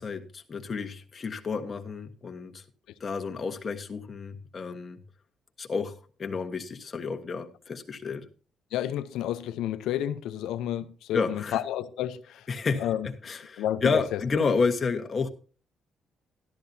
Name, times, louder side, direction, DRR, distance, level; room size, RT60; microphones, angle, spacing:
voice 1, 0.0-2.6 3.0-5.0 5.6-8.3 11.1-11.6 12.5-12.9 13.2-15.3, left 4 dB, 40° left, 1.4 m, -30 dB
voice 2, 8.7-12.5 12.8-13.1 13.6-14.4, left 11 dB, 90° left, 0.7 m, -31 dB
13.0 x 12.0 x 2.8 m
cardioid pair, 90°, 0 cm